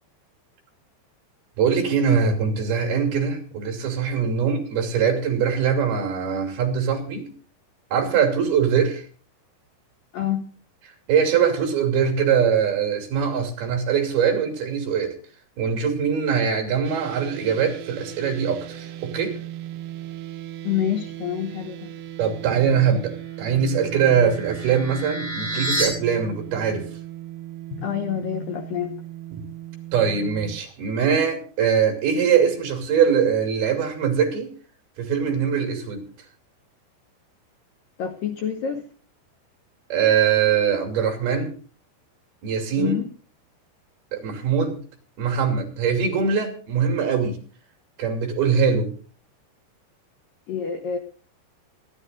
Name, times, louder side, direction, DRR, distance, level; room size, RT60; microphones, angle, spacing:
voice 1, 1.6-7.3 7.9-9.1 11.1-15.1 15.6-19.4 22.2-26.9 29.3-29.4 29.9-34.5 35.0-36.1 39.9-41.6 42.4-42.9 44.1-44.8 45.2-47.4 48.0-48.9, right 7 dB, 60° right, 4 dB, 4.5 m, -22 dB
voice 2, 10.1-10.6 20.6-21.9 27.8-29.0 38.0-38.8 42.8-43.1 50.5-51.0, left 9 dB, 75° left, 7 dB, 2.1 m, -27 dB
sound 1, 16.8-30.6, right 13 dB, 75° right, 2.5 m, -37 dB
sound 2, 23.6-25.9, right 1 dB, 25° left, 5.9 m, -30 dB
26.0 x 11.5 x 2.6 m, 0.39 s
omnidirectional pair, 5.4 m